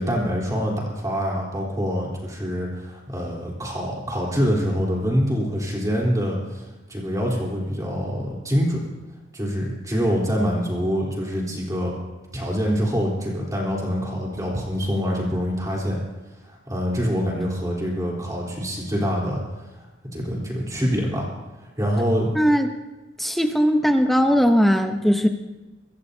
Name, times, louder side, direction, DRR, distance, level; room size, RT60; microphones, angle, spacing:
voice 1, 0.0-6.6 6.9-8.8 9.3-12.0 12.3-16.0 16.4-19.4 20.1-21.3 21.8-22.3, equal, 20° right, -3 dB, 3.7 m, -25 dB
voice 2, 22.3-22.7 23.2-25.3, equal, ahead, 5 dB, 0.9 m, -19 dB
25.0 x 15.0 x 2.8 m, 1.1 s
head